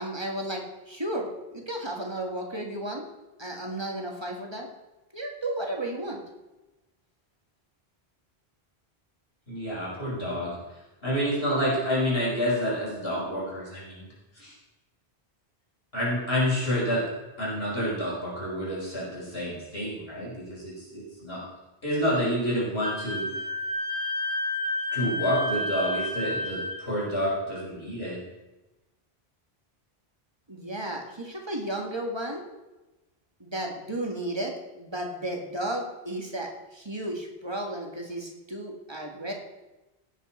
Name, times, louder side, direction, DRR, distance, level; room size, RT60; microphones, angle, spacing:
voice 1, 0.0-3.0 3.4-4.7 5.1-6.2 30.5-32.5 33.4-39.3, right 1 dB, 25° right, 0 dB, 1.9 m, -33 dB
voice 2, 9.5-10.5 11.0-14.1 14.3-14.5 15.9-17.0 17.4-21.4 21.8-23.3 24.9-28.2, equal, 75° left, -6 dB, 5.3 m, -28 dB
Wind instrument woodwind instrument, 22.8-26.8, left 2 dB, 55° right, 3.0 m, -30 dB
17.5 x 8.7 x 4.4 m, 1.1 s
omnidirectional pair, 1.0 m